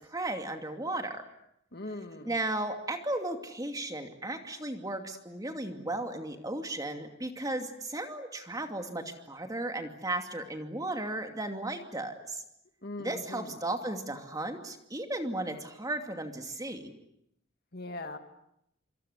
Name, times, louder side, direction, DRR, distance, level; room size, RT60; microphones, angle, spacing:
voice 1, 0.1-1.2 1.9-2.0 2.3-12.4 13.0-16.9, right 2 dB, 15° right, 5 dB, 2.6 m, -35 dB
voice 2, 1.7-2.3 12.8-13.5 17.7-18.2, left 2 dB, 50° left, 7 dB, 2.3 m, -40 dB
26.0 x 26.0 x 8.3 m, 0.78 s
head